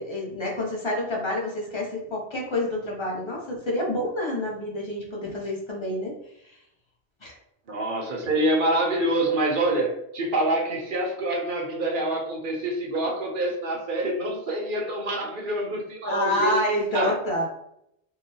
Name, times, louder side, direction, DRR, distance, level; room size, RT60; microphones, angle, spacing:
voice 1, 0.0-6.2 6.5-6.6 7.2-7.3 16.0-17.5, left 1 dB, 30° left, -3 dB, 0.8 m, -28 dB
voice 2, 7.7-16.5 16.9-17.2, right 1 dB, 55° right, 0 dB, 0.8 m, -26 dB
3.7 x 2.3 x 2.7 m, 0.76 s
omnidirectional pair, 1.1 m